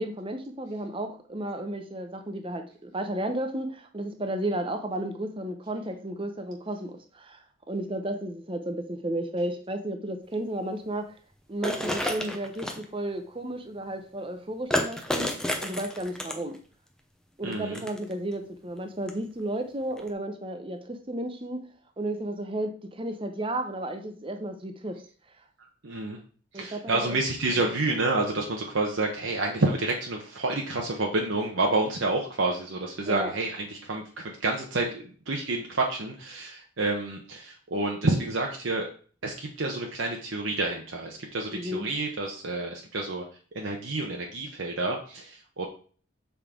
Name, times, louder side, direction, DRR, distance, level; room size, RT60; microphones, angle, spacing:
voice 1, 0.0-11.1 11.5-15.3 15.6-16.6 17.4-21.6 22.0-25.0 26.5-27.2 27.5-27.6 33.0-33.3 41.5-41.9, right 1 dB, 25° right, 6 dB, 0.8 m, -33 dB
sound 1, 11.6-12.8 14.7-16.6 17.5-18.1 19.1-19.2 20.0-20.1, left 1 dB, 5° left, 0.7 m, -30 dB
voice 2, 17.4-17.8 25.8-26.2 26.5-34.9 35.3-38.9 39.2-43.2 43.5-45.7, right 2 dB, 60° right, 1 dB, 0.9 m, -29 dB
7.0 x 5.2 x 3.7 m, 0.42 s
head